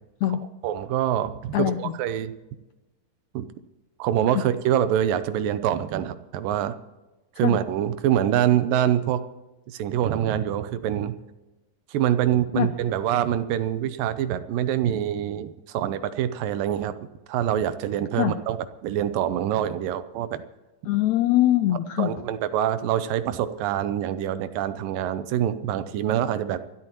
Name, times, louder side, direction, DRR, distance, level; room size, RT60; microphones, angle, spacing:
voice 1, 0.3-2.3 3.3-3.5 4.0-6.8 7.4-9.2 9.7-11.1 11.9-16.9 17.3-18.6 18.8-20.4 22.0-26.6, right 10 dB, 85° right, 12 dB, 2.5 m, -25 dB
voice 2, 20.9-22.1, left 14 dB, 90° left, 9 dB, 1.6 m, -22 dB
27.0 x 12.5 x 3.0 m, 1.1 s
omnidirectional pair, 3.9 m